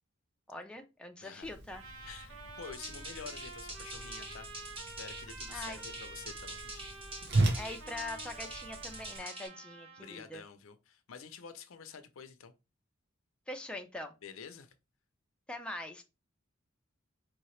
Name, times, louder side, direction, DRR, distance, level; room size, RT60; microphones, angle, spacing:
voice 1, 0.5-1.8 5.5-5.8 7.5-10.4 13.5-14.1 15.5-16.0, left 2 dB, 5° left, 0.5 m, -43 dB
voice 2, 1.2-1.6 2.1-4.7 5.0-6.9 10.0-12.5 14.2-14.7, left 6 dB, 75° left, 0.6 m, -49 dB
Whoosh swoosh swish, 1.4-9.2, right 2 dB, 55° right, 0.8 m, -38 dB
Trumpet, 1.7-10.3, right 3 dB, 75° right, 1.1 m, -49 dB
sound 1, 2.6-9.5, right 1 dB, 25° right, 1.2 m, -46 dB
4.6 x 2.8 x 3.1 m
head